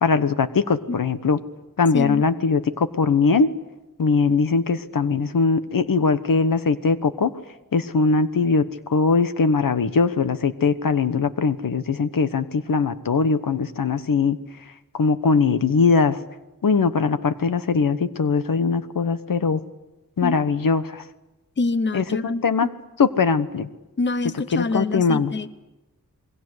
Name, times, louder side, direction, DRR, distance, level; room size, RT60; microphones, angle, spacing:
voice 1, 0.0-1.4 1.8-3.5 4.0-7.3 7.7-14.4 14.9-16.2 16.6-19.6 20.2-21.1 21.9-22.7 23.0-23.7 24.5-25.3, left 4 dB, 75° left, 12 dB, 1.3 m, -21 dB
voice 2, 1.9-2.2 20.2-20.4 21.6-22.7 24.0-25.5, left 3 dB, 35° left, 14 dB, 0.9 m, -25 dB
28.0 x 21.5 x 8.0 m, 1.0 s
wide cardioid pair, 95°, 34 cm